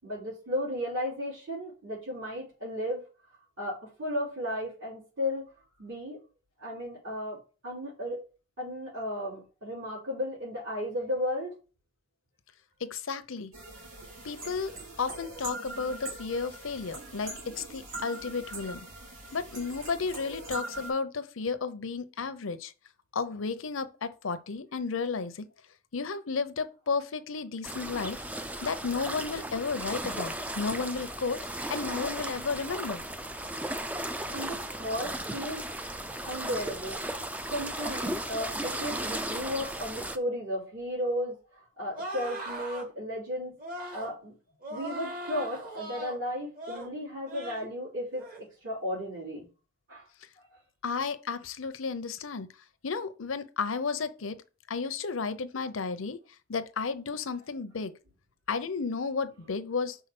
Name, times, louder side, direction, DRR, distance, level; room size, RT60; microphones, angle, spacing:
voice 1, 0.0-3.0 3.6-5.5 5.8-6.2 6.6-7.4 7.6-8.2 8.6-11.6 34.3-35.6 36.2-37.0 37.5-44.3 44.7-48.3 48.6-49.5 49.9-50.1 50.4-50.5, left 1 dB, 65° right, 3.7 m, -34 dB
voice 2, 12.9-13.5 14.2-14.7 15.0-18.9 19.3-22.7 23.1-25.5 25.9-28.2 28.6-31.4 31.7-33.0 50.8-52.5 52.8-54.4 54.7-56.2 56.5-57.9 58.5-60.0, left 4 dB, 85° left, 0.7 m, -33 dB
sound 1, 13.5-20.9, right 2 dB, 90° right, 3.3 m, -42 dB
sound 2, 27.6-40.2, right 1 dB, 5° right, 0.3 m, -36 dB
sound 3, 41.9-42.9 43.6-44.1 44.6-46.2 46.5-46.9 47.3-47.7 48.1-48.4, right 1 dB, 45° right, 1.7 m, -39 dB
5.6 x 4.0 x 5.9 m
head